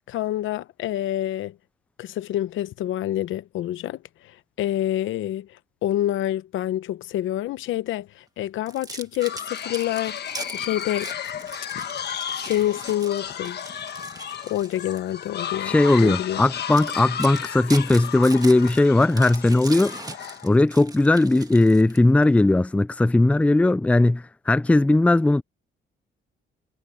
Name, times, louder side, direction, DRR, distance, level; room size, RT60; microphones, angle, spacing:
voice 1, 0.1-1.6 2.0-11.1 12.5-13.6 14.5-15.7 16.0-16.4, left 13 dB, 80° left, 0.9 m, -27 dB
sound 1, 8.7-15.1 15.6-15.8 16.3-16.4 16.7-22.2, right 3 dB, 20° right, 2.0 m, -40 dB
sound 2, 9.2-20.5, left 9 dB, 55° left, 1.4 m, -34 dB
voice 2, 15.7-20.0 20.4-25.4, left 2 dB, 5° left, 0.4 m, -18 dB
cardioid pair, 90°, 20 cm